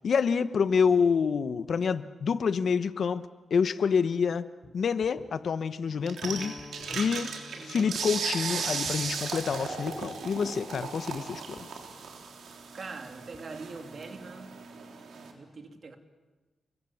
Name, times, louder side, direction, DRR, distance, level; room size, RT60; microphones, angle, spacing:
voice 1, 0.0-3.2 3.5-4.4 4.7-6.6 6.9-7.3 7.6-11.7, left 6 dB, 60° left, 13 dB, 1.0 m, -27 dB
sound 1, 4.6-4.7 5.0-5.3 6.4-7.1 8.8-9.6 10.2-10.5 11.1-11.8 12.6-12.8 13.1-13.4, left 2 dB, 10° left, 4.6 m, -50 dB
sound 2, 6.1-15.3, right 5 dB, 80° right, 3.6 m, -37 dB
Guitar, 6.2-12.2, left 3 dB, 35° left, 4.2 m, -51 dB
voice 2, 12.7-14.6 15.3-16.0, right 4 dB, 50° right, 5 dB, 3.0 m, -43 dB
29.5 x 22.5 x 7.3 m, 1.2 s
wide cardioid pair, 115°, 0 cm